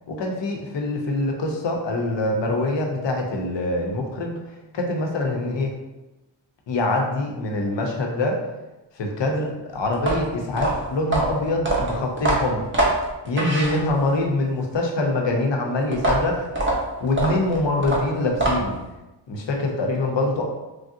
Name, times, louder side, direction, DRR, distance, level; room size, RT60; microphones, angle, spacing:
voice 1, 0.1-4.4 4.7-5.7 6.7-8.4 9.0-12.7 13.2-16.5 17.0-18.8 19.3-20.4, left 2 dB, 70° left, 1 dB, 0.6 m, -24 dB
sound 1, 9.9-14.2 15.9-18.9, right 2 dB, 25° right, 0.6 m, -24 dB
3.2 x 2.7 x 2.5 m, 1.0 s
wide cardioid pair, 135°, 45 cm